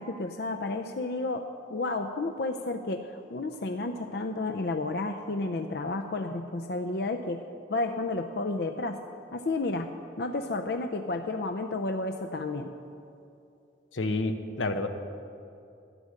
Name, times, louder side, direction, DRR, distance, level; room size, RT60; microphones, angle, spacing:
voice 1, 0.0-7.4 7.7-9.0 9.3-9.9 10.2-12.7, left 2 dB, 55° left, 6 dB, 0.5 m, -31 dB
voice 2, 13.9-14.9, left 2 dB, 85° left, 7 dB, 0.9 m, -29 dB
13.0 x 9.6 x 6.5 m, 2.6 s
head